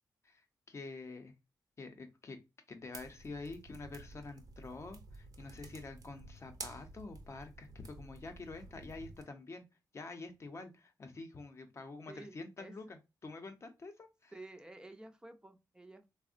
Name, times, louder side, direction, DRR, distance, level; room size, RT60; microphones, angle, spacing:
voice 1, 0.2-1.3 1.8-2.4 2.7-9.6 9.9-14.3, left 3 dB, 40° left, 0.6 m, -47 dB
sound 1, 2.9-9.2, right 3 dB, 60° right, 0.6 m, -51 dB
voice 2, 12.1-12.7 14.3-16.1, right 2 dB, 10° right, 0.4 m, -52 dB
3.5 x 2.1 x 2.4 m
wide cardioid pair, 125°, 7 cm